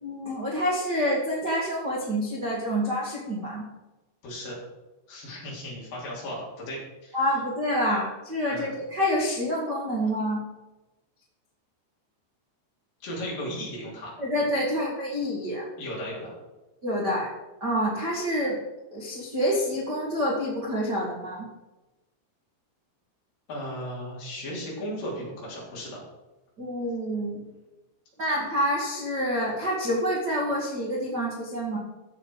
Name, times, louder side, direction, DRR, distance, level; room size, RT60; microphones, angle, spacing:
voice 1, 0.0-3.6 7.1-10.4 14.2-15.6 16.8-17.3 17.6-18.6 18.9-21.5 26.6-27.4 28.2-31.8, equal, 40° right, -4 dB, 1.5 m, -27 dB
voice 2, 4.2-4.6 5.1-7.2 8.5-8.7 13.0-14.2 15.8-16.4 23.5-26.0, equal, 55° left, -4 dB, 4.9 m, -36 dB
14.5 x 7.2 x 4.8 m, 1.1 s
omnidirectional pair, 5.1 m